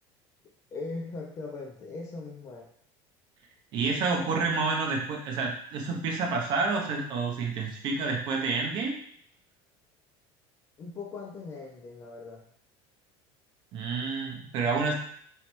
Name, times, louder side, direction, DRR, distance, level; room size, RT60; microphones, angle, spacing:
voice 1, 0.7-2.7 10.8-12.4, left 3 dB, 20° left, 1 dB, 0.4 m, -39 dB
voice 2, 3.7-9.0 13.7-14.9, right 4 dB, 35° right, 1 dB, 0.6 m, -29 dB
3.2 x 3.0 x 3.0 m, 0.63 s
cardioid pair, 180°, 13 cm